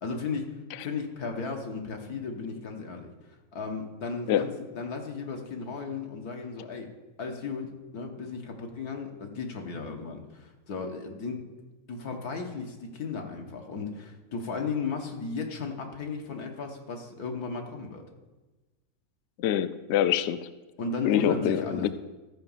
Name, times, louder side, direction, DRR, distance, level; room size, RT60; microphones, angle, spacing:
voice 1, 0.0-3.1 3.5-6.9 7.2-11.4 11.9-18.0 20.8-21.9, left 4 dB, 85° left, 3 dB, 1.9 m, -35 dB
voice 2, 19.4-20.5 21.0-21.9, left 10 dB, 65° left, 12 dB, 0.7 m, -25 dB
13.0 x 4.9 x 7.2 m, 1.2 s
omnidirectional pair, 1.6 m